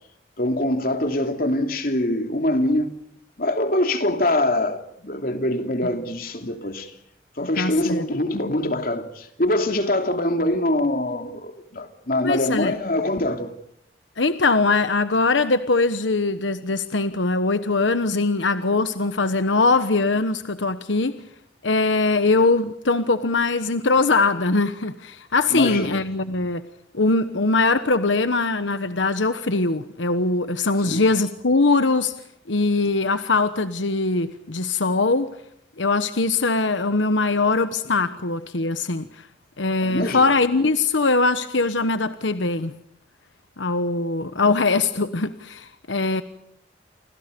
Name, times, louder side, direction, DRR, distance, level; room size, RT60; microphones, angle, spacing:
voice 1, 0.4-2.9 3.4-6.9 7.4-13.5 25.5-26.0 30.8-31.0 39.8-40.2, left 1 dB, 50° left, 3.0 m, -24 dB
voice 2, 7.6-8.0 12.2-12.7 14.2-21.2 21.6-26.6 26.9-32.1 32.5-35.3 35.8-39.3 39.6-42.8 43.6-46.2, left 3 dB, 90° left, 1.2 m, -21 dB
29.5 x 25.5 x 5.3 m
head